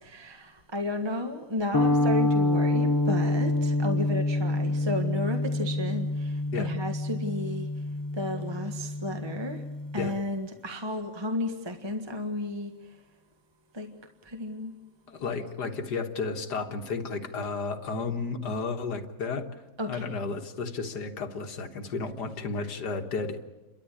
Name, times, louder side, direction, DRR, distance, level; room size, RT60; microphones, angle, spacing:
voice 1, 0.0-7.7 8.1-9.6 9.9-12.7 13.7-13.9 14.2-14.7 19.8-20.0, left 1 dB, 15° right, 5 dB, 1.5 m, -33 dB
sound 1, 1.7-10.1, left 2 dB, 20° left, 0.5 m, -27 dB
voice 2, 15.1-19.5 19.9-23.5, left 4 dB, 75° left, 6 dB, 2.1 m, -33 dB
29.5 x 13.5 x 9.9 m, 1.1 s
omnidirectional pair, 1.8 m